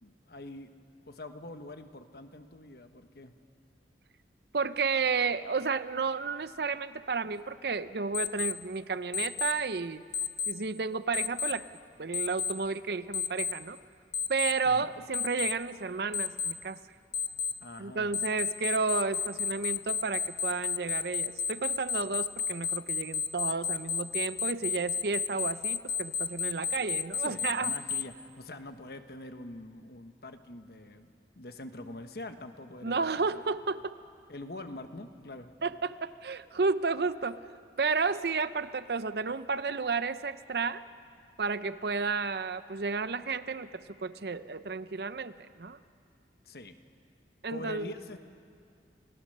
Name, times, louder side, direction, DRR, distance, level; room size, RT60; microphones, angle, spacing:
voice 1, 0.0-0.7 1.1-3.3 14.6-14.9 17.6-18.1 27.2-31.1 31.3-33.5 34.3-35.5 46.4-46.7 47.5-48.2, left 2 dB, 60° left, 8 dB, 1.2 m, -44 dB
voice 2, 4.5-10.0 10.5-11.7 12.0-13.8 14.3-16.8 17.8-27.7 32.8-33.9 35.6-37.4 37.8-40.8 41.4-45.8 47.4-47.9, right 4 dB, 65° right, 13 dB, 0.6 m, -32 dB
Alarm, 8.1-8.5 9.1-9.5 10.1-10.5 11.1-11.5 12.1-12.5 13.1-13.5 14.1-14.5 15.1-15.5 16.1-16.5 17.1-17.5 18.1-28.0, left 7 dB, 85° left, 1.0 m, -31 dB
28.0 x 17.5 x 6.6 m, 2.3 s
head